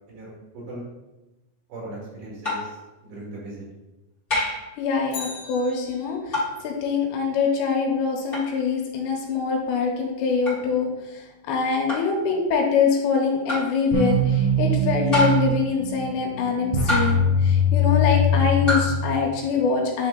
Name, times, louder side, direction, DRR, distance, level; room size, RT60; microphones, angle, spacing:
voice 1, 0.1-0.9 1.7-3.6, right 2 dB, 70° right, -4 dB, 4.0 m, -38 dB
sound 1, 2.4-2.8 4.3-4.7 6.3-6.6 8.3-8.5 10.5-10.6 11.9-12.2 13.5-13.8 15.1-15.6 16.9-17.3 18.7-19.0, left 2 dB, 25° left, 1.1 m, -26 dB
voice 2, 4.8-11.2 11.5-20.1, left 5 dB, 80° left, 1 dB, 3.0 m, -24 dB
Bicycle, 5.1-6.4 14.8-14.9, left 5 dB, 55° left, 2.0 m, -39 dB
sound 2, 13.9-19.5, left 2 dB, 85° right, 1.9 m, -22 dB
9.7 x 3.4 x 3.8 m, 1.0 s
omnidirectional pair, 5.2 m